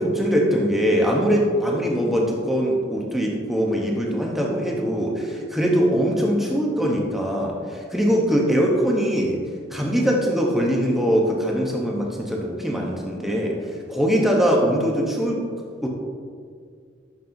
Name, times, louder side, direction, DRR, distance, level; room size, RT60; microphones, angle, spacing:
voice 1, 0.0-9.4 9.7-13.5 13.9-15.4 15.8-15.9, equal, ahead, -2 dB, 0.7 m, -22 dB
11.5 x 5.4 x 2.6 m, 2.1 s
head